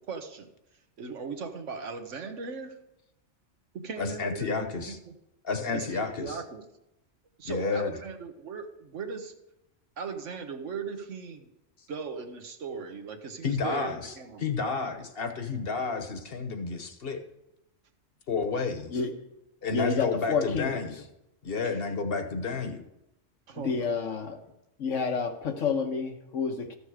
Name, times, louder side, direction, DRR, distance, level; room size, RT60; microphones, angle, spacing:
voice 1, 0.1-0.5 1.0-2.8 3.7-5.2 5.7-6.6 7.4-9.3 10.0-11.5 11.9-14.4 21.6-21.8 23.5-23.9, right 5 dB, 80° right, 6 dB, 1.4 m, -38 dB
voice 2, 4.0-5.0 5.4-6.4 7.4-8.0 13.4-17.2 18.3-19.0 19.6-21.0 21.4-22.8, left 4 dB, 55° left, 7 dB, 1.2 m, -31 dB
voice 3, 19.7-20.9 23.5-24.4 24.8-26.8, left 5 dB, 90° left, 5 dB, 1.4 m, -29 dB
14.0 x 6.9 x 4.9 m, 0.88 s
omnidirectional pair, 1.3 m